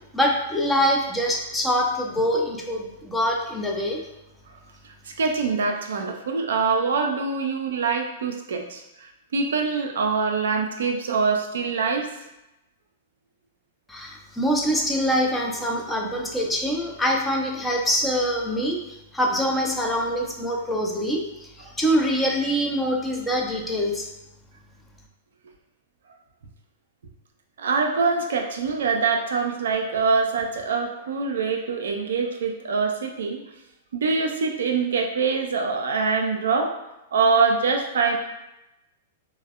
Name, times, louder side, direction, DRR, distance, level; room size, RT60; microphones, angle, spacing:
voice 1, 0.1-4.0 13.9-18.8 19.1-24.1, equal, 5° left, -1 dB, 0.4 m, -24 dB
voice 2, 4.8-12.1 27.6-33.4 33.9-36.7 37.1-38.2, right 4 dB, 65° right, 3 dB, 0.3 m, -24 dB
3.2 x 2.0 x 2.3 m, 0.92 s
figure-of-eight pair, 100°, 0 cm